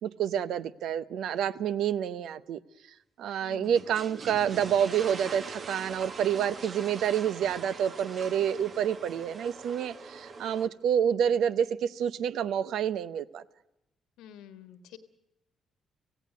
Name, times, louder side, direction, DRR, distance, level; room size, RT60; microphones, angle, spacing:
voice 1, 0.0-2.6 3.2-13.4, right 9 dB, 75° right, 0.7 m, -28 dB
voice 2, 3.4-3.7 14.2-15.0, left 10 dB, 85° left, 1.5 m, -48 dB
sound 1, 3.6-10.7, right 4 dB, 50° right, 1.4 m, -43 dB
17.5 x 16.0 x 9.4 m
supercardioid pair, 60°, 0 cm